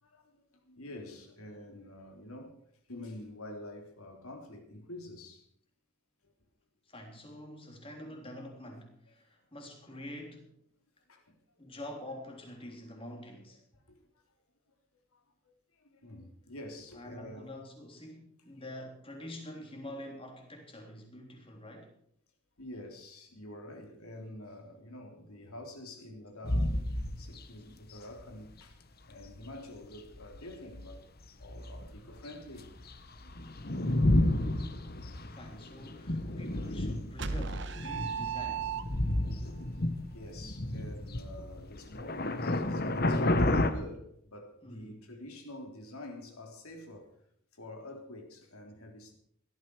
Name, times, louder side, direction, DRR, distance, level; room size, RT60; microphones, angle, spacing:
voice 1, 0.0-2.6 2.9-5.5 6.2-6.3 9.9-10.1 11.1-11.7 13.7-14.0 14.7-14.8 15.1-17.5 22.6-26.8 27.2-31.1 31.4-32.7 33.2-33.3 37.8-38.0 40.1-47.2 47.5-49.1, left 1 dB, 80° left, 3.4 m, -47 dB
voice 2, 6.9-10.5 11.6-13.6 16.9-21.9 35.3-38.8 44.6-45.0, left 1 dB, 25° left, 3.4 m, -46 dB
sound 1, 26.4-27.4 28.2-28.3 29.2-29.3 30.1-31.0 31.4-43.7, left 1 dB, 45° left, 1.2 m, -31 dB
sound 2, 37.2-39.3, right 6 dB, 55° right, 1.1 m, -35 dB
17.5 x 13.0 x 4.8 m
head